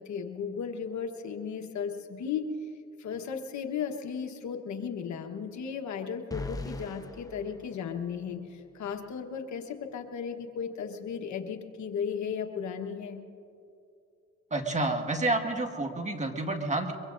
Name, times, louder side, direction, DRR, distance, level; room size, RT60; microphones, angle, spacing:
voice 1, 0.0-2.5 3.0-13.2, left 7 dB, 70° left, 5 dB, 1.3 m, -35 dB
sound 1, 6.3-8.4, left 2 dB, 10° left, 0.9 m, -40 dB
voice 2, 14.5-16.9, right 2 dB, 25° right, 4 dB, 1.7 m, -29 dB
23.5 x 23.5 x 2.6 m, 2.6 s
cardioid pair, 90°, 30 cm